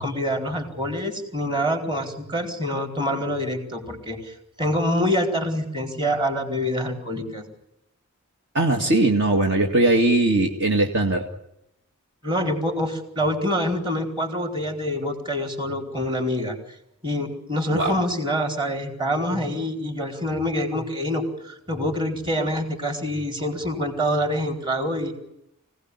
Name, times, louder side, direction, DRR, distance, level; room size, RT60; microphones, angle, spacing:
voice 1, 0.0-7.4 12.2-16.5 17.0-25.1, equal, 20° right, 4 dB, 4.3 m, -26 dB
voice 2, 8.5-11.2 17.7-18.0, right 2 dB, 55° right, 3 dB, 2.2 m, -20 dB
24.5 x 18.0 x 9.7 m, 0.84 s
head